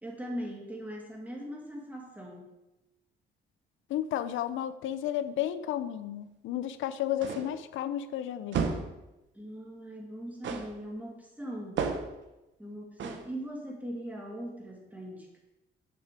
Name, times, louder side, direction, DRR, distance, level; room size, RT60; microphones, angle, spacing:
voice 1, 0.0-2.5 9.3-11.9 12.6-15.4, equal, 10° right, -1 dB, 2.3 m, -40 dB
voice 2, 3.9-8.6, left 11 dB, 80° left, 13 dB, 0.6 m, -32 dB
sound 1, 7.2-7.6 8.5-9.0 10.4-10.8 11.8-12.2 13.0-13.3, right 5 dB, 70° right, 1.0 m, -32 dB
6.6 x 6.2 x 4.9 m, 0.96 s
cardioid pair, 90°, 20 cm